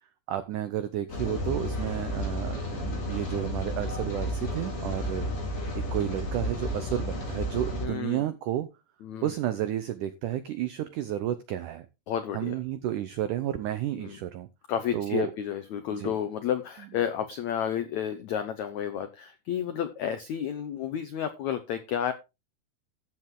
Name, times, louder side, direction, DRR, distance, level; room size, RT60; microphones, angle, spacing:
voice 1, 0.3-5.3 5.9-8.7 9.2-11.9 12.3-14.5 14.9-15.3 16.0-16.1, right 12 dB, 85° right, 12 dB, 1.8 m, -31 dB
Rain, 1.1-7.9, equal, 60° left, 7.0 m, -32 dB
voice 2, 7.8-8.2 9.0-9.3 12.1-12.6 13.9-14.2 14.7-22.1, left 9 dB, 85° left, 10 dB, 1.6 m, -31 dB
14.0 x 7.6 x 3.8 m, 0.26 s
omnidirectional pair, 4.7 m